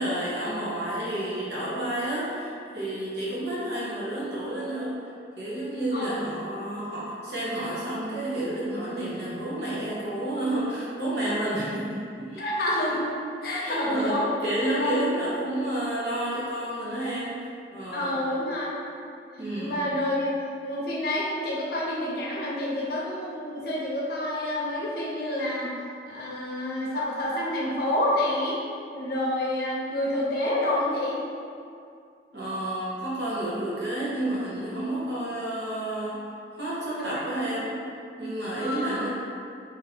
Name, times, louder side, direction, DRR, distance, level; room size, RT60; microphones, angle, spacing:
voice 1, 0.0-5.0 5.4-13.0 13.6-18.2 19.4-19.9 32.3-37.8 38.2-39.1, right 1 dB, 60° right, -8 dB, 1.0 m, -30 dB
voice 2, 5.9-6.2 12.4-13.1 13.4-14.3 14.8-15.0 17.9-18.8 19.5-20.3 20.6-25.7 26.1-28.6 28.9-31.2 37.0-37.6 38.5-39.0, left 1 dB, 55° left, -5 dB, 0.7 m, -28 dB
2.8 x 2.6 x 4.1 m, 2.4 s
head